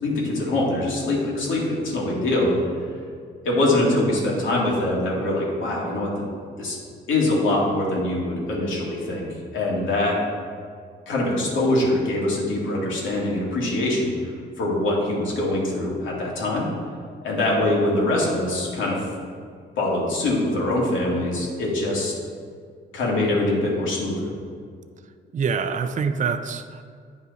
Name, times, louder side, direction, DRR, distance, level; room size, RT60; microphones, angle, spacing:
voice 1, 0.0-2.6 3.4-6.1 6.6-6.8 7.1-10.2 11.1-14.1 14.6-16.7 17.2-19.0 19.8-22.1 22.9-24.3, left 1 dB, 80° left, -4 dB, 2.2 m, -23 dB
voice 2, 25.3-26.8, right 5 dB, 40° right, 9 dB, 0.5 m, -25 dB
9.2 x 5.5 x 4.0 m, 2.1 s
cardioid pair, 90°, 20 cm